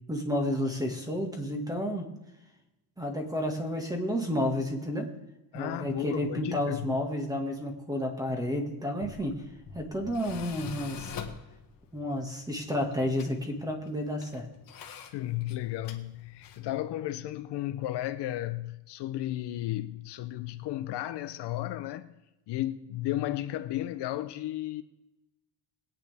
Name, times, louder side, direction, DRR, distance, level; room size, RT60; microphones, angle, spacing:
voice 1, 0.1-2.1 3.0-5.1 5.5-9.4 9.7-11.1 11.9-14.5, left 1 dB, 10° right, 1.9 m, -31 dB
voice 2, 5.5-6.9 15.1-22.1 22.5-24.8, left 14 dB, 65° left, 0.7 m, -34 dB
Tools, 8.8-16.8, left 6 dB, 50° left, 1.4 m, -46 dB
21.0 x 8.9 x 3.5 m
cardioid pair, 140°, 44 cm